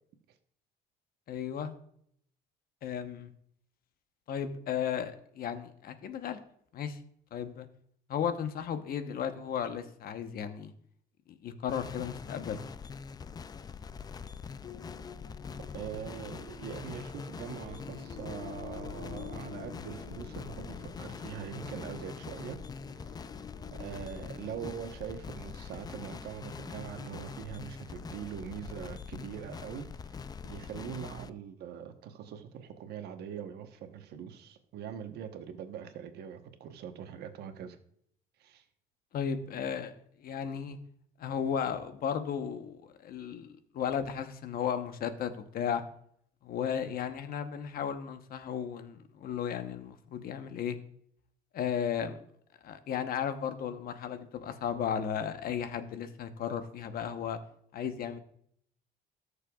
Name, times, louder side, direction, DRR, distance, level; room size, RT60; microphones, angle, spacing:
voice 1, 1.3-1.7 2.8-3.3 4.3-6.4 6.7-7.0 7.3-7.7 8.1-10.7 11.3-12.6 39.1-39.9 40.2-40.8 41.2-45.8 46.4-50.8 51.5-52.2 52.6-57.4 57.7-58.2, left 8 dB, 60° left, 1.0 m, -35 dB
sound 1, 11.7-31.3, left 6 dB, 25° left, 0.3 m, -44 dB
sound 2, 14.6-24.7, left 5 dB, 40° left, 1.2 m, -48 dB
voice 2, 15.6-22.6 22.9-37.8 38.4-38.6, right 8 dB, 75° right, 1.1 m, -43 dB
18.5 x 6.6 x 2.4 m
cardioid pair, 110°, 17 cm